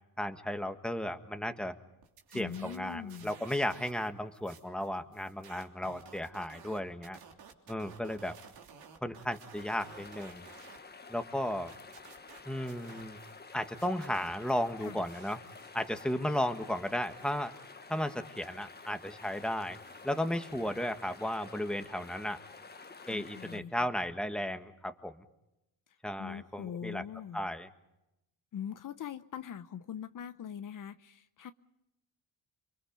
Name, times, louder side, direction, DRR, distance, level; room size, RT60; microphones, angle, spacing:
voice 1, 0.2-1.8 2.3-7.2 7.7-8.3 9.0-10.5 11.1-11.7 12.5-13.2 13.5-15.4 15.7-17.5 17.9-19.8 20.0-22.4 23.1-25.3 26.0-27.0 27.3-27.7, left 1 dB, ahead, 7 dB, 1.6 m, -34 dB
sound 1, 2.0-4.1 4.3-10.8 11.1-13.4 13.7-21.3, right 6 dB, 80° right, 3.4 m, -56 dB
voice 2, 2.3-3.4 14.8-15.0 23.0-23.8 25.9-27.5 28.5-31.5, left 8 dB, 55° left, 11 dB, 0.9 m, -42 dB
sound 2, 9.6-23.6, left 4 dB, 25° left, 1.4 m, -51 dB
29.0 x 23.0 x 5.4 m, 0.87 s
cardioid pair, 90°, 38 cm